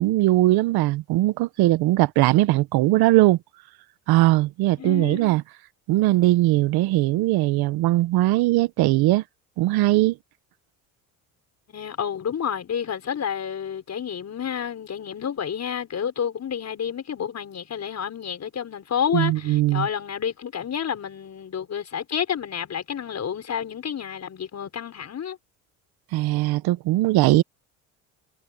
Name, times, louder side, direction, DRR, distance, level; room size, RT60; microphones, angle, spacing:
voice 1, 0.0-3.4 4.1-5.4 5.9-9.2 9.6-10.2 19.1-19.9 26.1-27.4, right 17 dB, 75° right, 1.1 m, -20 dB
voice 2, 4.8-5.3 11.7-25.4, left 8 dB, 45° left, 6.2 m, -30 dB
supercardioid pair, 90°, 38 cm